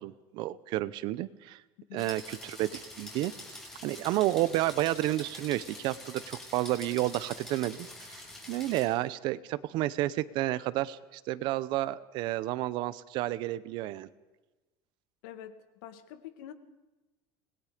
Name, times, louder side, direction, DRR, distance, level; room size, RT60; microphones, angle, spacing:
voice 1, 0.0-1.6 1.9-3.3 3.8-8.2 8.5-14.1, right 16 dB, 45° right, 17 dB, 0.7 m, -31 dB
sound 1, 2.0-8.9, left 1 dB, 5° left, 5.5 m, -46 dB
voice 2, 15.2-16.5, left 11 dB, 70° left, 10 dB, 1.9 m, -46 dB
26.5 x 20.5 x 5.1 m, 1.1 s
cardioid pair, 180°, 11 cm